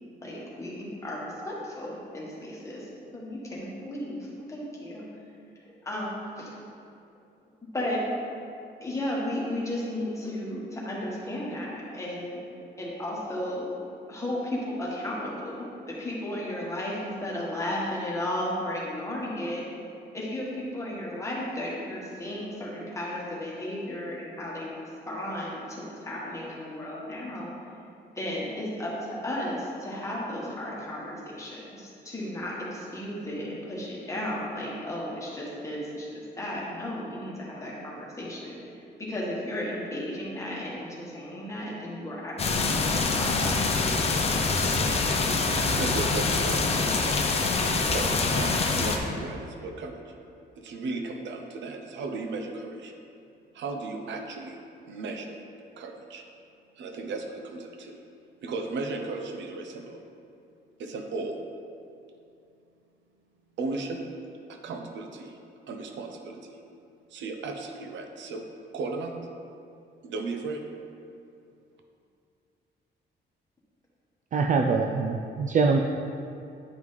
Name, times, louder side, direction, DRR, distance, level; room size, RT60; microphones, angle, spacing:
voice 1, 0.2-2.9 3.1-5.0 5.6-6.5 7.7-8.0 8.8-12.4 12.8-19.6 20.1-24.7 25.0-27.5 28.1-36.1 36.4-38.6 39.0-43.6 45.6-45.8, left 1 dB, 15° left, -5 dB, 1.4 m, -34 dB
sound 1, 42.4-49.0, left 3 dB, 35° left, 0.6 m, -25 dB
voice 2, 45.8-47.3 47.8-50.1 50.6-52.9 53.5-54.6 54.9-55.4 55.8-56.2 56.8-58.0 58.4-60.0 60.8-61.4 63.6-64.1 64.5-65.4 65.7-66.6 67.1-68.5 68.7-69.2 70.0-70.6, right 3 dB, 85° right, 3 dB, 0.8 m, -35 dB
voice 3, 74.3-75.8, right 4 dB, 45° right, 2 dB, 0.4 m, -23 dB
9.3 x 5.3 x 3.2 m, 2.6 s
cardioid pair, 150°, 18 cm